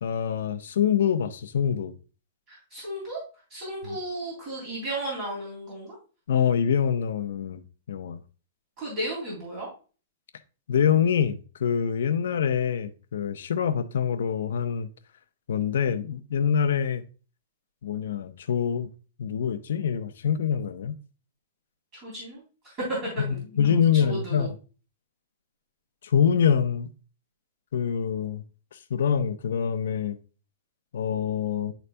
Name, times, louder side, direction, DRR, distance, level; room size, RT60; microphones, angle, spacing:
voice 1, 0.0-1.9 6.3-7.6 7.9-8.2 10.7-14.9 15.5-17.0 17.8-18.9 19.2-21.0 23.2-24.6 26.0-26.9 27.7-28.4 28.9-30.2 30.9-31.7, left 8 dB, 80° left, 0.8 m, -25 dB
voice 2, 2.5-3.2 3.5-5.9 8.8-9.7 21.9-22.8 23.3-24.5, right 1 dB, 30° right, 3.4 m, -35 dB
11.0 x 4.0 x 2.2 m
hypercardioid pair, 160°, 0 cm